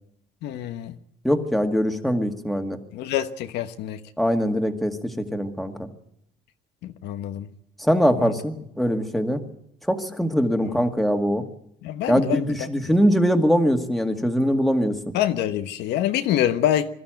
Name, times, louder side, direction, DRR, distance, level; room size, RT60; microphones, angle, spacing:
voice 1, 0.4-0.9 2.9-4.0 6.8-7.5 8.2-8.3 10.6-10.8 11.8-12.9 15.1-16.9, left 11 dB, 85° left, 1.2 m, -26 dB
voice 2, 1.2-2.8 4.2-5.0 5.3-5.9 7.8-9.4 9.9-11.4 12.1-14.9, equal, ahead, 2.1 m, -22 dB
22.0 x 13.0 x 9.1 m
cardioid pair, 110°, 17 cm